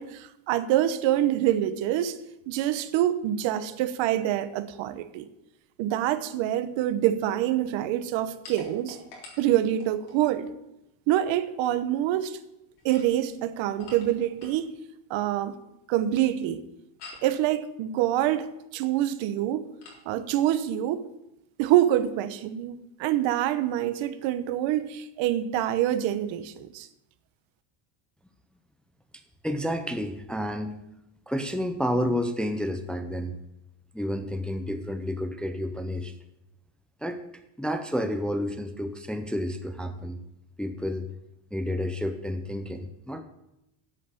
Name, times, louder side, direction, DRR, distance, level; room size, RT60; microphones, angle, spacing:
voice 1, 0.0-2.2 2.5-5.3 5.8-9.0 9.4-10.5 11.1-12.4 12.8-14.7 15.1-15.6 15.9-16.6 17.2-19.7 20.1-21.1 21.6-26.9, right 12 dB, 70° right, 1.0 m, -26 dB
sound 1, 8.4-10.2 12.7-14.7 17.0-17.4 19.8-20.1, left 3 dB, 55° left, 3.8 m, -47 dB
voice 2, 29.4-30.8 31.3-33.4 33.9-36.1 37.0-37.2 37.6-40.2 40.6-41.1 41.5-43.2, equal, ahead, 0.6 m, -30 dB
8.3 x 7.8 x 8.3 m
cardioid pair, 135°, 48 cm